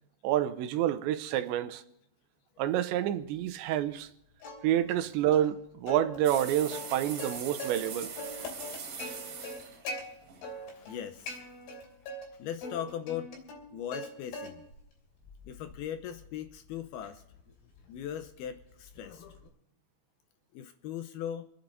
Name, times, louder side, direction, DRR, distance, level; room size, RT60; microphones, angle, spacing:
voice 1, 0.2-1.8 2.6-4.1 4.6-8.1 9.4-9.5, right 11 dB, 85° right, 3.1 m, -28 dB
Plucked string instrument, 4.4-5.1 5.3-5.5 5.9-7.9 8.2-10.0 10.4-11.0 11.3-12.2 12.6-14.1 14.3-14.8 15.2-19.5, left 1 dB, 65° left, 4.8 m, -42 dB
sound 1, 6.2-11.2, right 5 dB, 45° right, 2.7 m, -42 dB
voice 2, 10.7-11.5 12.4-13.3 13.7-14.6 15.5-17.2 17.9-19.2 20.5-21.4, left 10 dB, 80° left, 2.3 m, -39 dB
27.5 x 9.9 x 4.0 m
omnidirectional pair, 5.2 m